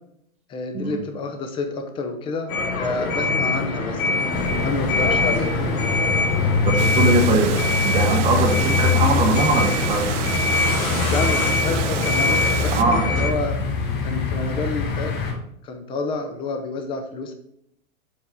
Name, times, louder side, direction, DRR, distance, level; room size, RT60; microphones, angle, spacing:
voice 1, 0.5-4.0 4.6-5.5 11.0-13.6 14.0-15.1 15.6-17.3, left 3 dB, 15° left, 6 dB, 0.6 m, -29 dB
sound 1, 2.5-13.3, left 3 dB, 75° left, 2.1 m, -24 dB
sound 2, 4.3-15.3, left 5 dB, 40° left, 2.8 m, -24 dB
voice 2, 6.6-7.5 7.8-10.1 12.8-13.0, right 4 dB, 15° right, 2 dB, 0.8 m, -21 dB
Water, 6.8-12.8, right 12 dB, 60° right, 0.5 m, -31 dB
7.4 x 4.5 x 5.0 m, 0.73 s
hypercardioid pair, 140°, 42 cm